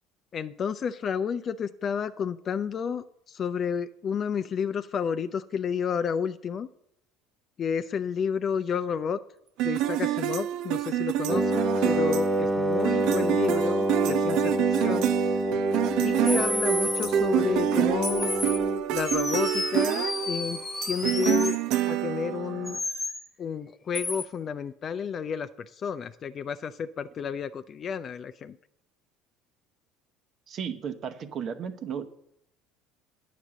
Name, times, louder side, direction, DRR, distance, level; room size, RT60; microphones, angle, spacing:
voice 1, 0.3-6.7 7.6-9.2 9.6-15.1 16.0-18.3 18.9-21.6 21.9-22.8 23.4-28.6, left 7 dB, 45° left, 11 dB, 0.4 m, -31 dB
sound 1, 9.6-22.8, right 13 dB, 65° right, 0.4 m, -27 dB
Wind instrument woodwind instrument, 11.3-18.9, right 1 dB, 15° right, 0.9 m, -27 dB
sound 2, 16.3-17.1 18.0-18.6 19.1-21.6 22.7-23.2 23.9-24.3, left 3 dB, 20° left, 1.4 m, -31 dB
voice 2, 30.5-32.1, right 7 dB, 50° right, 9 dB, 1.0 m, -34 dB
9.2 x 5.1 x 7.4 m, 0.75 s
hypercardioid pair, 70°, 0 cm